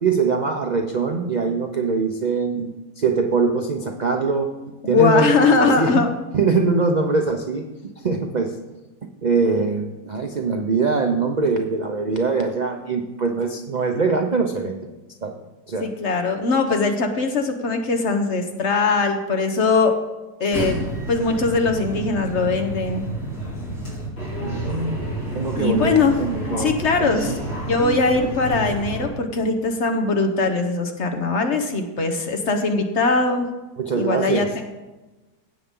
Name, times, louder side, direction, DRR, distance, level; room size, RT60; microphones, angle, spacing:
voice 1, 0.0-2.7 3.0-4.5 4.9-5.9 6.3-7.6 8.0-8.5 9.2-14.8 15.2-15.3 15.7-15.9 24.4-25.0 25.3-26.7 27.0-27.4 33.8-34.5, right 4 dB, 80° right, 4 dB, 0.4 m, -22 dB
voice 2, 4.9-6.1 15.8-20.0 20.4-23.0 25.6-26.1 26.6-27.4 27.6-33.5 33.9-34.6, left 3 dB, 50° left, 5 dB, 1.1 m, -21 dB
sound 1, 20.5-29.1, right 1 dB, 70° left, 4.6 m, -29 dB
16.5 x 6.8 x 3.7 m, 1.1 s
omnidirectional pair, 1.8 m